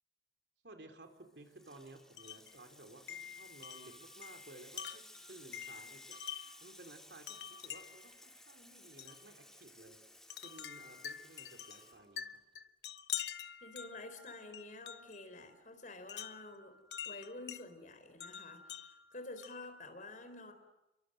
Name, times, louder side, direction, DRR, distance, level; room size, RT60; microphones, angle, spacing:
voice 1, 0.6-6.2 6.6-10.0 10.4-12.4, right 2 dB, 70° right, 7 dB, 3.3 m, -56 dB
Water tap faucet / Sink (filling or washing), 1.1-12.6, left 1 dB, 5° left, 2.5 m, -58 dB
Wind chime, 2.2-2.5 3.1-6.7 7.3-8.1 9.0-9.2 10.3-15.2 16.1-17.6 18.2-19.7, left 9 dB, 75° left, 1.1 m, -46 dB
voice 2, 13.6-16.8 17.0-20.5, left 2 dB, 45° left, 8 dB, 4.2 m, -49 dB
28.5 x 24.0 x 7.8 m, 0.96 s
head